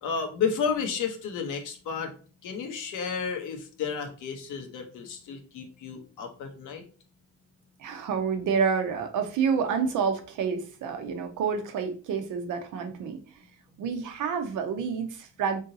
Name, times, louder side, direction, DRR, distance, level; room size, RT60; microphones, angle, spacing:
voice 1, 0.0-2.1 2.4-6.8, left 6 dB, 85° left, 4 dB, 1.1 m, -32 dB
voice 2, 7.8-13.2 13.8-15.6, right 6 dB, 80° right, 6 dB, 0.8 m, -28 dB
4.0 x 3.6 x 2.7 m, 0.38 s
cardioid pair, 90°, 30 cm